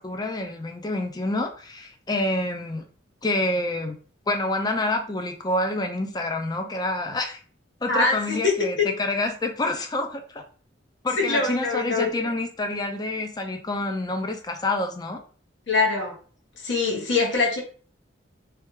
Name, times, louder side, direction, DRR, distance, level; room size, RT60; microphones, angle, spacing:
voice 1, 0.0-2.8 3.2-4.0 4.3-7.4 7.8-10.4 11.0-15.2, left 2 dB, 20° left, 5 dB, 0.4 m, -27 dB
voice 2, 7.9-8.5 8.8-8.9 11.2-12.1 15.7-16.1 16.6-17.6, left 3 dB, 65° left, 0 dB, 1.0 m, -23 dB
3.3 x 2.3 x 3.0 m, 0.41 s
head